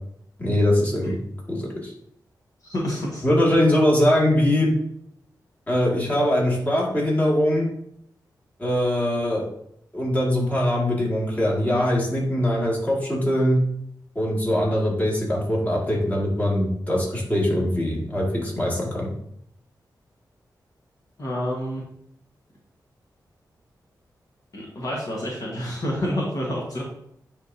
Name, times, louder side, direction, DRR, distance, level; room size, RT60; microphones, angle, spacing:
voice 1, 0.4-1.2 1.5-1.9 3.2-4.7 5.7-7.7 8.6-9.4 9.9-13.6 14.2-19.1, left 1 dB, 20° left, -4 dB, 2.2 m, -22 dB
voice 2, 2.6-3.2 21.2-21.8 24.5-26.8, equal, 55° left, -4 dB, 1.5 m, -28 dB
9.5 x 3.6 x 2.8 m, 0.72 s
cardioid pair, 80°, 7 cm